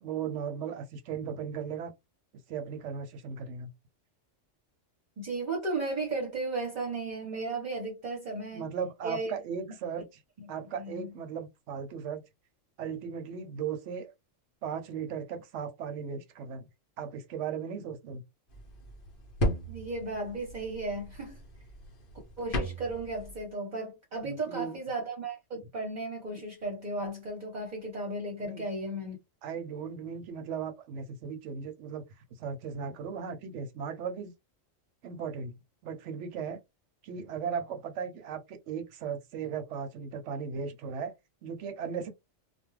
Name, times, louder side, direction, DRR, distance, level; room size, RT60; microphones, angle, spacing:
voice 1, 0.0-1.9 2.5-3.7 8.5-10.2 10.5-12.3 12.8-14.1 14.6-16.6 17.0-18.2 24.2-24.8 28.4-28.7 29.4-32.0 32.4-34.3 35.0-35.5 35.8-36.6 37.0-41.1 41.4-42.1, right 7 dB, 70° right, 0.9 m, -37 dB
voice 2, 5.2-8.6 9.0-9.3 10.4-10.5 10.8-11.1 19.7-21.4 22.4-29.2, right 2 dB, 40° right, 0.9 m, -35 dB
sound 1, 18.5-23.4, equal, 50° left, 0.8 m, -36 dB
2.3 x 2.2 x 3.1 m
omnidirectional pair, 1.3 m